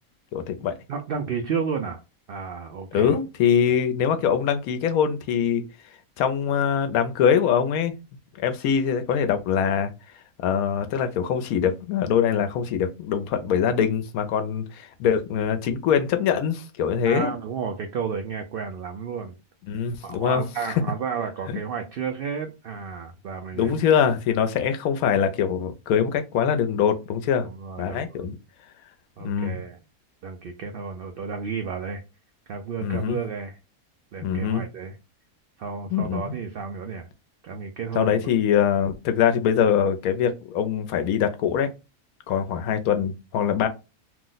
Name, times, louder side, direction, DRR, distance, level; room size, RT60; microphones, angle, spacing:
voice 1, 0.3-0.7 2.9-5.6 6.2-7.9 8.4-9.9 10.4-17.3 19.7-20.4 21.5-21.6 23.5-27.5 27.8-28.4 29.2-29.6 32.8-33.2 34.2-34.6 35.9-36.4 38.0-41.7 42.3-43.7, left 8 dB, 80° left, 1.0 m, -23 dB
voice 2, 0.9-2.0 2.3-3.2 3.7-3.8 17.0-19.4 20.0-23.9 27.4-28.3 29.2-29.8 30.2-32.0 32.5-33.6 34.1-35.0 35.6-37.1 37.4-38.3, right 6 dB, 85° right, 0.5 m, -32 dB
2.8 x 2.1 x 3.8 m
omnidirectional pair, 1.5 m